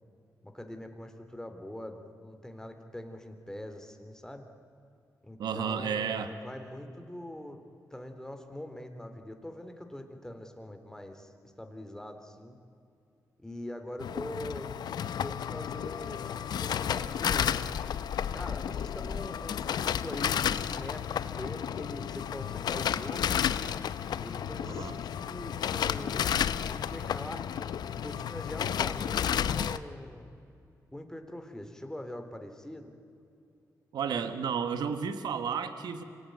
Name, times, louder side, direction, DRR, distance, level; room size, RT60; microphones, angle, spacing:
voice 1, 0.4-4.4 5.2-7.6 7.9-12.6 13.4-14.7 15.2-17.7 18.3-23.4 24.2-26.3 26.7-27.5 27.9-29.2 29.5-30.3 30.9-32.9, left 1 dB, 10° left, 6 dB, 3.4 m, -43 dB
voice 2, 5.4-6.3 24.6-25.0 33.9-36.0, right 7 dB, 90° right, 10 dB, 1.3 m, -32 dB
sound 1, 14.0-29.8, left 9 dB, 85° left, 0.6 m, -32 dB
25.5 x 18.5 x 9.5 m, 2.5 s
cardioid pair, 55°, 7 cm